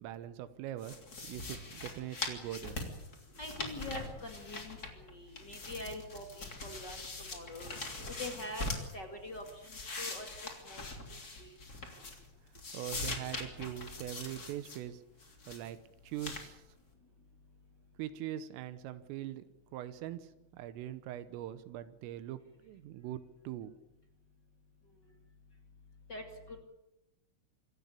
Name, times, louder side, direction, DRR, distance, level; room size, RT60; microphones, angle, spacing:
voice 1, 0.0-2.8 3.3-3.4 12.7-15.0 15.5-15.8 16.0-16.6 18.0-23.8, right 12 dB, 85° right, 13 dB, 3.6 m, -42 dB
sound 1, 0.8-5.1 5.3-8.9 9.3-12.3 12.5-14.8 15.2-15.7 16.2-16.5, left 2 dB, 25° left, 2.4 m, -42 dB
voice 2, 3.4-7.7 8.2-8.7 8.9-10.8 11.1-11.6 26.1-26.6, left 1 dB, 50° left, 4 dB, 1.3 m, -44 dB
26.5 x 15.0 x 8.3 m, 0.89 s
omnidirectional pair, 5.8 m